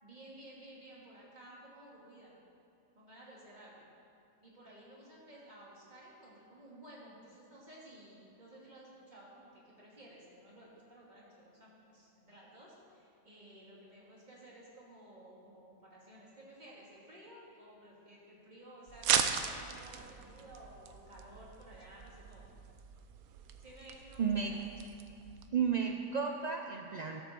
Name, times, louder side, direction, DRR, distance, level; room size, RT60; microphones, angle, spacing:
voice 1, 0.0-2.3 2.9-3.9 4.4-22.5 23.6-24.4, right 1 dB, 30° right, -5 dB, 2.6 m, -55 dB
sound 1, 18.9-25.5, right 8 dB, 90° right, 1.1 m, -38 dB
voice 2, 24.2-24.6 25.5-27.2, right 6 dB, 65° right, 3 dB, 0.4 m, -32 dB
12.5 x 7.8 x 6.7 m, 2.6 s
omnidirectional pair, 1.5 m